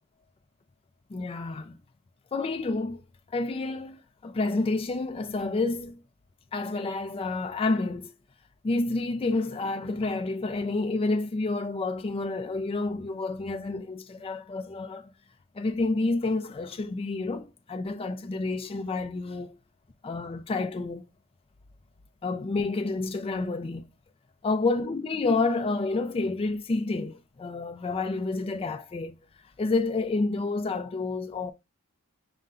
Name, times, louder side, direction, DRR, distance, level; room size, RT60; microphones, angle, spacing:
voice 1, 1.1-1.8 2.3-3.0 3.3-6.0 6.5-8.1 8.6-15.1 15.6-19.6 20.0-21.1 22.2-23.9 24.4-29.2 29.6-31.5, left 3 dB, 25° left, 0.4 m, -29 dB
5.5 x 2.2 x 3.6 m
head